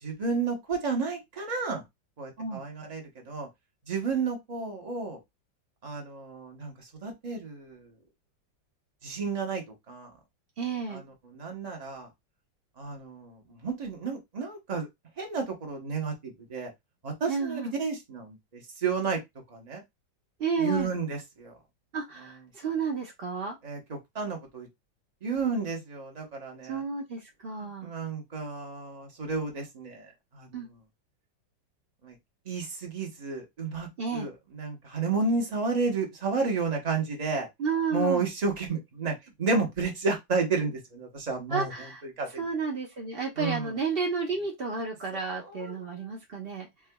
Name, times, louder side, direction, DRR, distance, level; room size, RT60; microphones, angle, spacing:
voice 1, 0.0-1.8 2.2-3.5 3.9-5.2 5.8-7.9 9.0-10.1 10.9-12.1 12.8-14.9 15.2-16.7 17.0-19.2 19.5-19.8 20.6-21.5 22.2-22.3 23.6-23.8 24.1-24.7 25.2-26.8 27.6-30.7 32.0-32.2 32.4-37.5 37.9-41.7 42.0-42.3 43.4-43.7 45.3-45.8, right 4 dB, 35° right, 0.6 m, -32 dB
voice 2, 10.6-11.0 17.3-17.7 20.4-20.9 21.9-23.6 26.6-27.9 30.5-30.7 34.0-34.3 37.6-38.2 41.5-42.0 42.4-46.7, right 5 dB, 85° right, 0.5 m, -31 dB
4.6 x 2.4 x 2.2 m
omnidirectional pair, 2.0 m